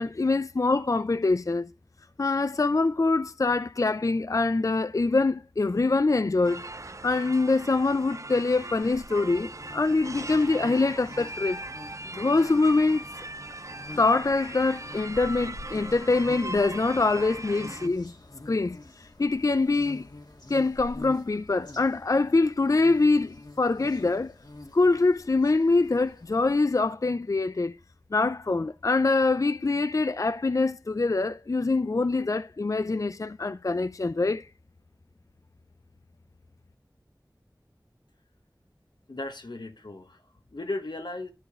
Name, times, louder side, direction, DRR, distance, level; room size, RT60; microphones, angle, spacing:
voice 1, 0.0-1.7 2.2-6.6 7.0-11.6 12.1-13.1 14.0-18.1 18.5-20.1 20.5-24.3 24.7-27.7 28.1-34.5, left 3 dB, 50° left, 0.4 m, -24 dB
sound 1, 6.4-17.9, right 2 dB, 45° right, 0.5 m, -40 dB
sound 2, 8.8-26.6, left 2 dB, 75° left, 1.7 m, -47 dB
voice 2, 39.1-41.3, left 2 dB, 90° left, 1.2 m, -36 dB
13.0 x 4.9 x 3.7 m
wide cardioid pair, 40°, 7 cm